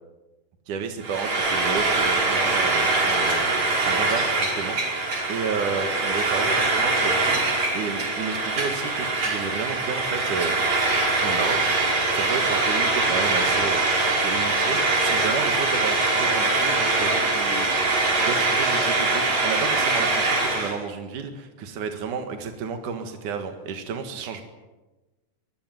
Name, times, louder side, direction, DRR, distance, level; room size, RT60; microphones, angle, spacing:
voice 1, 0.7-10.6 11.2-24.4, right 6 dB, 80° right, 6 dB, 3.3 m, -32 dB
Frying (food), 1.0-20.8, right 3 dB, 60° right, 6.2 m, -23 dB
26.0 x 20.0 x 9.3 m, 1.1 s
omnidirectional pair, 3.5 m